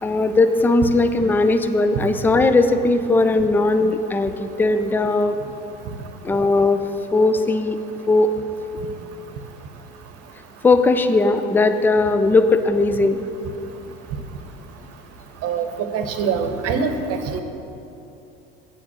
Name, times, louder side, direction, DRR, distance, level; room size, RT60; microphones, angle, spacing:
voice 1, 0.0-5.3 6.2-6.8 7.1-7.8 8.1-8.3 10.6-13.3, left 3 dB, 5° left, 9 dB, 0.4 m, -18 dB
voice 2, 15.9-17.4, right 6 dB, 50° right, 7 dB, 1.0 m, -23 dB
8.6 x 5.1 x 6.9 m, 2.8 s
hypercardioid pair, 75°, 31 cm